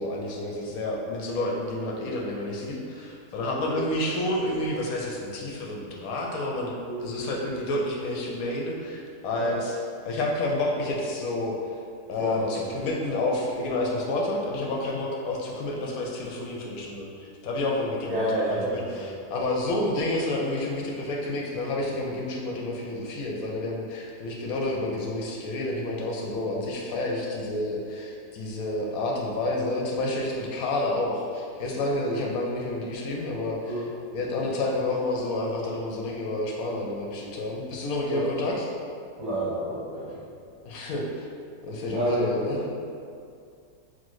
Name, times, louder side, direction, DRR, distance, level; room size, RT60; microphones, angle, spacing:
voice 1, 0.0-6.7 7.0-9.8 10.0-11.8 12.1-33.8 34.1-38.7 40.7-41.3 41.6-42.7, left 1 dB, 70° left, -2 dB, 0.9 m, -29 dB
voice 2, 12.2-12.7 18.1-19.1 33.7-33.9 38.1-38.2 39.2-40.1 41.9-42.3, right 1 dB, 80° right, -10 dB, 1.6 m, -29 dB
5.9 x 2.2 x 3.0 m, 2.4 s
omnidirectional pair, 1.9 m